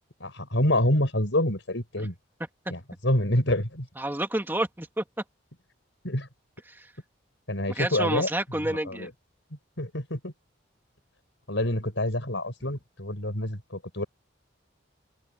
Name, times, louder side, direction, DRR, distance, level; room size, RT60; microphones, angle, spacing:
voice 1, 0.2-2.1 2.7-3.9 6.0-6.3 7.5-8.3 8.6-9.1 9.8-10.3 11.5-14.1, left 1 dB, 65° left, 5.8 m, -27 dB
voice 2, 4.0-5.0 6.7-6.9 7.8-9.1, right 1 dB, 10° right, 2.1 m, -29 dB
head